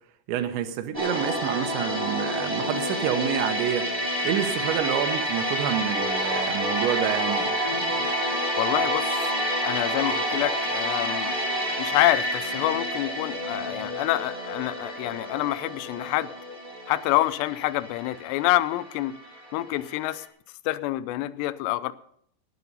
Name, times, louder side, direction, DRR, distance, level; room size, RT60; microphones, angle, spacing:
voice 1, 0.3-3.9 4.2-7.5, right 10 dB, 80° right, 7 dB, 3.3 m, -28 dB
sound 1, 0.9-19.8 20.0-20.2, equal, 45° right, 0.4 m, -29 dB
voice 2, 8.6-9.3 9.6-11.3 11.8-16.3 16.9-19.2 19.5-20.2 20.7-21.9, left 16 dB, 80° left, 14 dB, 2.7 m, -27 dB
18.0 x 8.3 x 5.4 m, 0.68 s
omnidirectional pair, 5.2 m